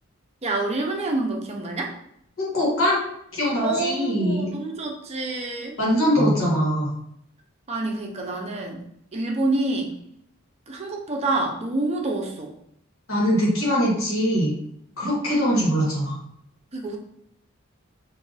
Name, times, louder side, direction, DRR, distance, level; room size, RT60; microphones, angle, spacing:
voice 1, 0.4-1.9 3.6-5.8 7.7-8.8 9.1-9.9 10.7-12.5 16.7-17.0, right 2 dB, 30° right, 0 dB, 0.6 m, -27 dB
voice 2, 2.4-3.0 3.3-4.5 5.8-6.9 13.1-14.5 15.0-16.2, equal, 90° left, -5 dB, 1.4 m, -22 dB
2.7 x 2.5 x 4.0 m, 0.73 s
head